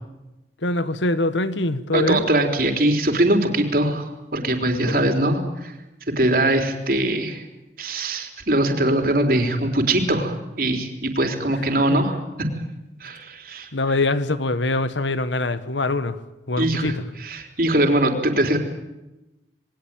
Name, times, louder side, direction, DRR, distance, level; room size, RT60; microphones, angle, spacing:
voice 1, 0.6-2.2 4.9-5.0 11.9-12.0 13.7-16.2 16.5-17.0, left 2 dB, 90° left, 1.4 m, -23 dB
voice 2, 1.9-5.7 6.2-7.4 7.8-12.5 13.0-13.7 16.6-18.6, right 1 dB, 50° right, 3.9 m, -22 dB
28.0 x 21.0 x 9.0 m
head